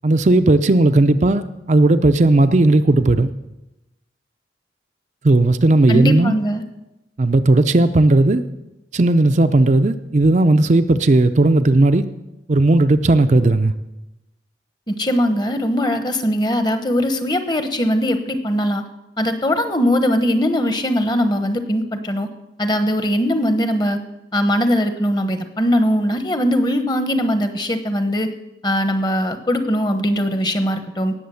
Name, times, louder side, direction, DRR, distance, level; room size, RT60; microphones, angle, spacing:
voice 1, 0.0-3.3 5.2-6.3 7.2-8.4 8.9-12.0 12.5-13.7, right 2 dB, 40° right, 9 dB, 0.5 m, -15 dB
voice 2, 5.9-6.6 14.9-18.8 19.2-22.3 22.6-24.0 24.3-28.3 28.6-31.1, equal, 25° left, 9 dB, 1.1 m, -20 dB
18.0 x 7.3 x 7.0 m, 0.95 s
head